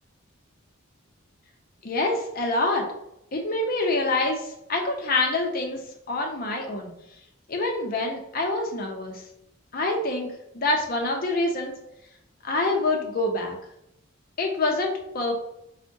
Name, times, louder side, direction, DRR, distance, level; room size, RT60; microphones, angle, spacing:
voice 1, 1.8-2.9 3.3-5.8 6.1-6.9 7.5-9.2 9.7-11.8 12.4-13.5 14.4-15.3, left 2 dB, 45° left, 2 dB, 0.5 m, -26 dB
4.4 x 2.1 x 2.6 m, 0.80 s
head